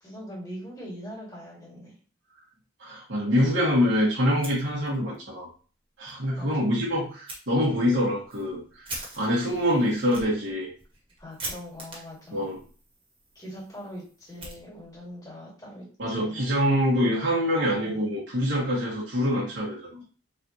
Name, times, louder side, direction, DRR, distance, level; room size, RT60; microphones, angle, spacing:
voice 1, 0.0-1.9 6.3-6.7 11.2-12.5 13.4-15.9 16.1-16.6 17.8-18.1, equal, 20° left, -5 dB, 1.9 m, -42 dB
voice 2, 2.8-5.5 6.0-10.7 12.3-12.6 16.0-20.0, equal, 60° right, -7 dB, 1.4 m, -25 dB
Fire, 4.3-5.2 5.5-5.6 6.0-6.1 7.3-7.4 8.0-15.1, right 2 dB, 25° right, 1.5 m, -43 dB
4.2 x 3.3 x 2.8 m, 0.39 s
head